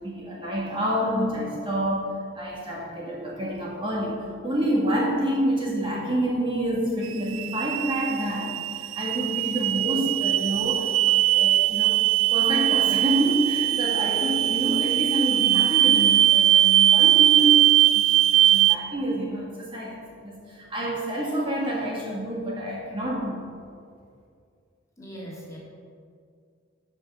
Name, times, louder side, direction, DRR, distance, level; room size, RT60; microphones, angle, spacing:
voice 1, 0.0-12.0 12.3-23.5, right 1 dB, 25° right, -4 dB, 1.9 m, -28 dB
sound 1, 7.0-18.7, right 13 dB, 75° right, 0.3 m, -20 dB
voice 2, 25.0-25.6, equal, 15° left, -5 dB, 2.4 m, -40 dB
14.0 x 5.7 x 5.4 m, 2.3 s
head